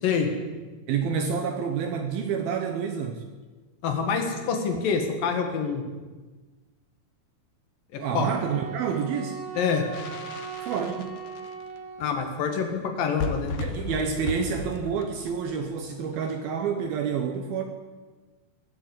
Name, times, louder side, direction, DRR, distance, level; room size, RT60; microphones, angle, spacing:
voice 1, 0.9-3.2 8.0-9.4 10.6-11.2 13.6-17.6, right 6 dB, 70° right, 5 dB, 2.6 m, -28 dB
voice 2, 3.8-5.8 7.9-8.3 9.6-9.8 12.0-13.5, left 6 dB, 60° left, 4 dB, 3.3 m, -26 dB
Wind instrument woodwind instrument, 8.1-12.4, right 6 dB, 55° right, 3.6 m, -39 dB
sound 1, 9.9-11.8 12.5-12.6 12.8-12.9 13.0-16.2, left 6 dB, 90° left, 1.6 m, -36 dB
21.0 x 8.1 x 8.0 m, 1.3 s
omnidirectional pair, 4.8 m